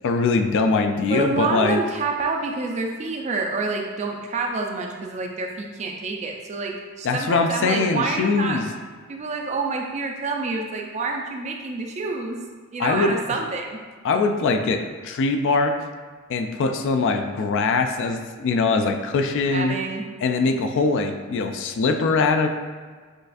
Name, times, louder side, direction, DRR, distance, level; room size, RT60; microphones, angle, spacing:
voice 1, 0.0-1.8 7.0-8.7 12.8-13.2 14.0-15.8 16.3-19.8 20.2-22.5, left 4 dB, 60° left, 7 dB, 0.3 m, -22 dB
voice 2, 1.1-8.6 9.1-12.4 12.7-13.8 19.5-20.1, right 3 dB, 30° right, 2 dB, 0.4 m, -28 dB
6.4 x 2.4 x 2.5 m, 1.5 s
head